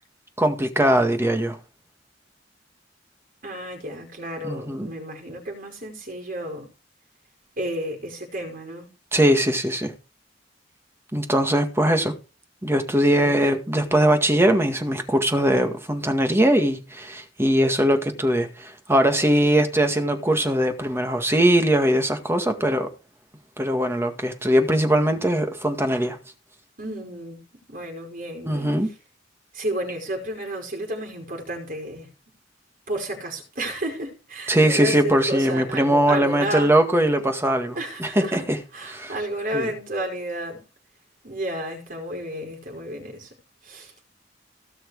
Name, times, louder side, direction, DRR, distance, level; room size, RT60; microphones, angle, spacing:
voice 1, 0.4-1.6 4.4-4.9 9.1-9.9 11.1-12.1 12.6-22.9 23.6-26.2 28.5-28.9 34.5-38.6 38.9-39.1 39.5-39.7, right 1 dB, 15° right, 1.9 m, -21 dB
voice 2, 3.4-6.7 7.6-8.9 13.1-13.4 26.8-28.7 29.5-32.1 32.9-36.7 37.7-38.5 38.7-40.6 41.2-43.3 43.6-43.9, right 1 dB, 50° right, 5.2 m, -32 dB
17.5 x 6.4 x 4.9 m
head